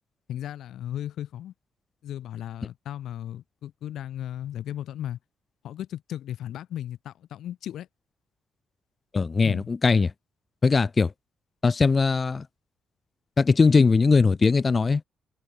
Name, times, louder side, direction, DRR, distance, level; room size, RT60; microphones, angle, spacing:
voice 1, 0.3-1.5 2.0-5.2 5.6-7.9 9.4-9.7, left 11 dB, 75° left, 4.3 m, -35 dB
voice 2, 9.1-10.1 10.6-11.1 11.6-12.4 13.4-15.0, left 4 dB, 30° left, 3.2 m, -20 dB
cardioid pair, 90°, 0 cm